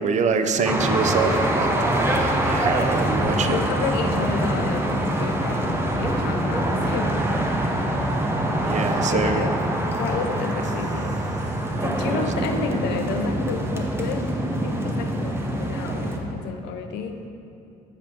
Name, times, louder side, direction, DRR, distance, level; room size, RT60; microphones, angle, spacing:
voice 1, 0.0-3.7 8.6-9.4 12.1-13.2, right 5 dB, 45° right, 7 dB, 0.6 m, -26 dB
sound 1, 0.6-16.2, right 1 dB, 15° right, 0.9 m, -24 dB
voice 2, 3.4-7.5 8.6-8.7 9.1-9.5 10.0-11.2 11.8-14.2 14.5-17.2, left 6 dB, 90° left, 6 dB, 0.7 m, -31 dB
13.5 x 5.0 x 3.6 m, 2.6 s
cardioid pair, 110°, 17 cm